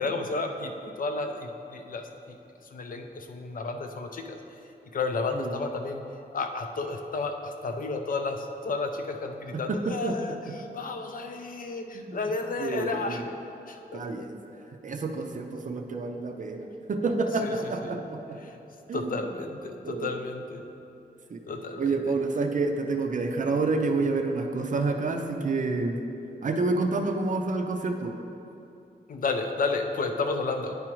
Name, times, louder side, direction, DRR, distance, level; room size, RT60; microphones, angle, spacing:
voice 1, 0.0-2.4 2.7-4.4 4.9-6.0 6.3-13.3 13.7-14.0 17.4-18.0 18.4-18.6 18.9-20.6 21.5-22.1 23.5-23.6 29.1-30.8, left 3 dB, 55° left, 5 dB, 0.5 m, -32 dB
voice 2, 9.5-10.4 11.9-12.3 12.6-13.2 13.9-14.4 14.8-18.4 18.9-19.2 19.8-20.1 21.3-21.4 21.8-26.0 26.4-28.1, right 3 dB, 50° right, 4 dB, 0.5 m, -29 dB
9.5 x 4.8 x 3.0 m, 2.8 s
wide cardioid pair, 165°, 17 cm